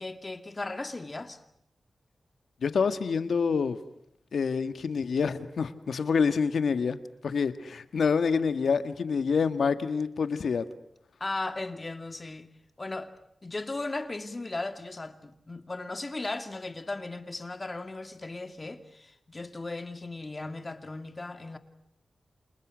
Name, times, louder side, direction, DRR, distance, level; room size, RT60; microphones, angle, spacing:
voice 1, 0.0-1.4 11.2-12.5 12.8-13.1 13.4-21.6, left 2 dB, 30° left, 2.5 m, -36 dB
voice 2, 2.6-3.8 4.3-10.7, left 5 dB, 85° left, 1.8 m, -27 dB
29.5 x 28.0 x 6.4 m
wide cardioid pair, 90°, 0 cm